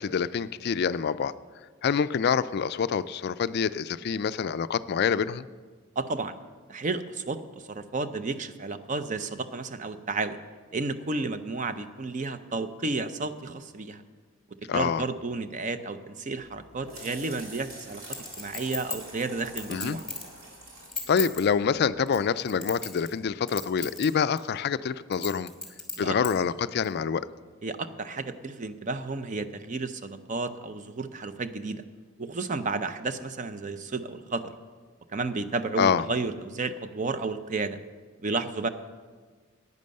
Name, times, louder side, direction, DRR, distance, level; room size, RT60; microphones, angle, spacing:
voice 1, 0.0-1.3 1.8-5.5 14.7-15.0 19.7-20.0 21.1-25.5 26.0-27.3 35.8-36.0, left 6 dB, 50° left, 15 dB, 0.3 m, -26 dB
voice 2, 6.0-6.3 6.7-7.4 7.7-10.4 10.7-14.0 14.7-18.0 18.4-20.0 26.0-26.2 27.6-31.8 32.2-34.5 35.1-37.8 38.2-38.7, right 3 dB, 35° right, 11 dB, 0.5 m, -32 dB
sound 1, 16.4-22.0, right 1 dB, 75° right, 3.7 m, -46 dB
Chink clink, 18.1-20.3 20.8-21.4 22.1-23.2 23.5-24.1 24.4-24.5 25.1-26.3 26.8-26.9, left 4 dB, ahead, 2.2 m, -34 dB
10.5 x 9.5 x 6.5 m, 1.5 s
head